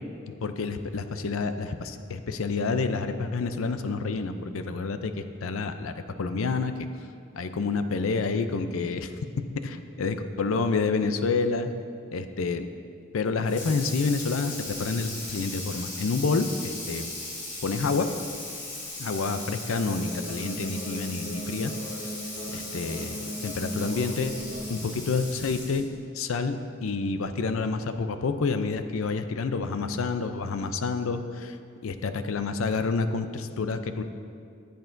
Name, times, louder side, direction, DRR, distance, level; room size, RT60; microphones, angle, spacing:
voice 1, 0.3-5.9 6.2-6.7 7.3-9.1 9.6-11.7 12.1-12.7 13.1-17.1 17.6-18.1 19.0-21.7 22.5-24.3 24.7-25.8 26.1-31.6 31.8-34.0, left 4 dB, 80° left, 9 dB, 0.5 m, -28 dB
Water tap faucet / Sink (filling or washing), 13.4-25.9, left 2 dB, 55° left, 2.5 m, -38 dB
sound 1, 19.7-24.7, equal, 60° right, 2.1 m, -38 dB
15.0 x 7.9 x 2.6 m, 2.3 s
head